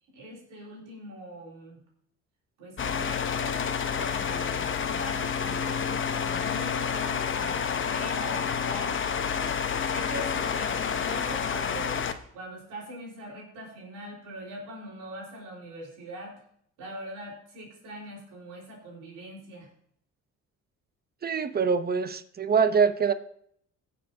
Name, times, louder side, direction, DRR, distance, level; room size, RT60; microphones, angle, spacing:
voice 1, 0.1-1.8 2.6-3.6 3.9-12.0 12.3-16.3 16.8-19.7, right 1 dB, 90° right, -2 dB, 4.3 m, -42 dB
sound 1, 2.8-12.1, left 7 dB, 40° left, 0.9 m, -29 dB
voice 2, 21.2-23.1, right 6 dB, 30° right, 12 dB, 0.8 m, -24 dB
19.5 x 7.0 x 2.8 m, 0.67 s
cardioid pair, 90°, 30 cm